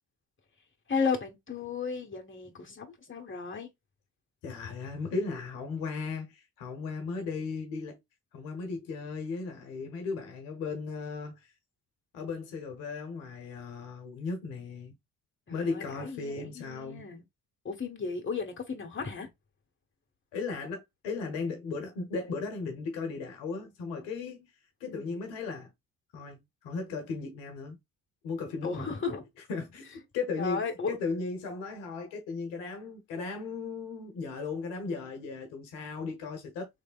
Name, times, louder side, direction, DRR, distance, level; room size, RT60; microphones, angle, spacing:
voice 1, 0.9-3.7 15.5-17.2 17.6-19.3 24.8-25.2 28.6-29.2 30.4-30.9, left 5 dB, 25° left, 1.2 m, -34 dB
voice 2, 4.4-8.0 8.3-11.4 12.1-14.9 15.5-17.1 20.3-24.5 24.8-25.7 26.1-27.8 28.2-28.9 29.5-36.7, left 4 dB, 80° left, 1.0 m, -36 dB
3.4 x 3.2 x 2.4 m
hypercardioid pair, 40°, 44 cm